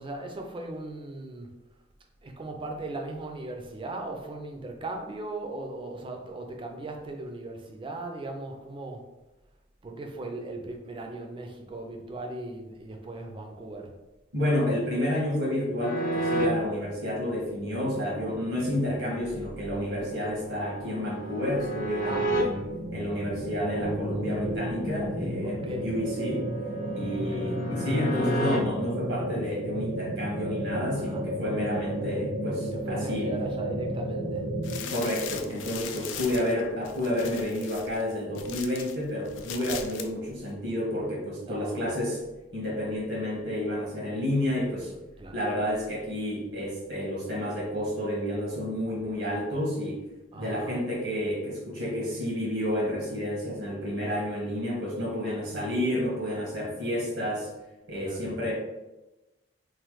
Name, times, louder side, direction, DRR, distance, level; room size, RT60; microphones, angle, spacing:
voice 1, 0.0-1.5 2.2-9.1 9.8-13.9 22.0-22.3 25.4-26.0 27.1-27.6 31.0-31.2 32.7-34.5 41.4-41.9 44.6-45.4 50.3-50.8 58.0-58.5, right 2 dB, 30° right, 3 dB, 0.4 m, -38 dB
voice 2, 14.3-22.6 22.9-26.5 26.9-33.3 34.8-42.2 42.5-44.9 45.3-50.0 50.3-57.5 57.9-58.5, left 1 dB, 85° right, -4 dB, 1.1 m, -30 dB
sound 1, 15.8-16.5 19.9-22.4 25.5-28.6, right 1 dB, 50° left, 0.6 m, -32 dB
sound 2, 17.6-34.8, equal, 60° right, 0.7 m, -34 dB
sound 3, 34.6-39.0 39.3-40.1 40.4-40.5, left 8 dB, 90° left, 0.3 m, -39 dB
3.1 x 2.0 x 3.0 m, 1.0 s
head